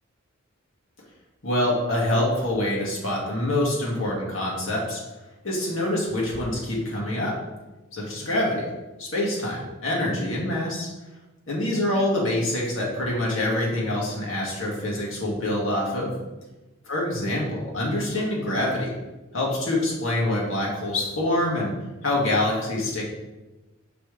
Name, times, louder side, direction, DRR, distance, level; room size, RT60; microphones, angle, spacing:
voice 1, 1.4-5.0 5.4-7.4 7.9-8.7 9.0-10.9 11.5-16.1 16.9-18.9 19.3-21.7 22.0-23.1, left 1 dB, 75° left, -4 dB, 1.9 m, -25 dB
6.0 x 5.4 x 3.3 m, 1.1 s
head